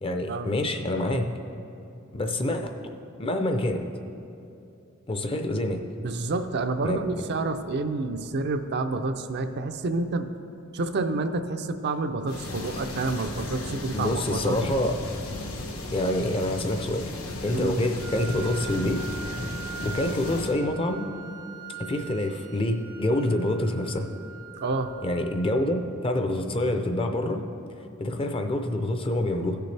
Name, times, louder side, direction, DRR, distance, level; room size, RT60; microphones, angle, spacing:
voice 1, 0.0-1.3 2.1-2.7 3.2-3.8 5.1-5.8 6.8-7.1 13.9-14.9 15.9-17.2 17.4-19.0 19.8-21.0 21.8-24.1 25.0-27.4 27.8-29.6, left 1 dB, 25° left, 6 dB, 0.5 m, -27 dB
voice 2, 6.0-10.3 10.7-14.6 17.5-17.7 24.6-24.9, right 3 dB, 50° right, 7 dB, 0.5 m, -29 dB
sound 1, 12.3-20.6, left 2 dB, 75° left, 1.2 m, -35 dB
Wind instrument woodwind instrument, 18.0-25.9, right 8 dB, 85° right, 1.3 m, -42 dB
16.0 x 6.8 x 3.3 m, 2.7 s
head